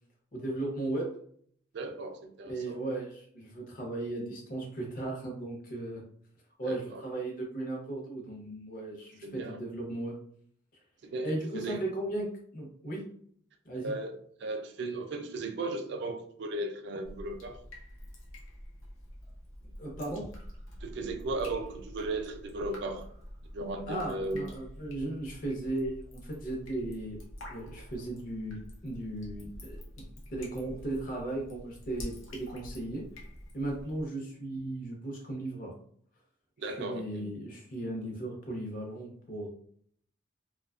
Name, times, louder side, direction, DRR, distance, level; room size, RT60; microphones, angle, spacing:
voice 1, 0.3-1.1 2.4-6.0 6.6-10.2 11.2-13.1 13.6-14.0 19.8-20.2 23.9-27.2 27.5-33.1 33.5-35.7 36.8-39.5, right 1 dB, 45° left, 0.7 m, -36 dB
voice 2, 1.7-2.8 6.6-7.0 9.2-9.6 11.0-11.8 13.8-17.6 20.8-23.1 23.5-24.5 36.6-37.3, right 2 dB, 55° right, 0.3 m, -36 dB
Drip, 17.0-34.0, equal, 85° left, 0.7 m, -47 dB
2.6 x 2.3 x 2.3 m
head